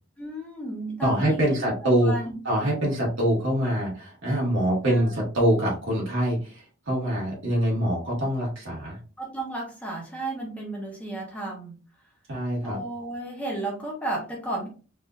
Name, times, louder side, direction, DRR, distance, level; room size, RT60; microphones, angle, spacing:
voice 1, 0.2-1.7 2.0-2.3 4.8-5.2 9.2-11.8 12.6-14.7, right 2 dB, 5° left, -2 dB, 0.8 m, -33 dB
voice 2, 1.0-2.1 2.5-9.0 12.3-12.8, right 1 dB, 60° right, -4 dB, 1.8 m, -24 dB
4.0 x 2.6 x 2.4 m, 0.36 s
head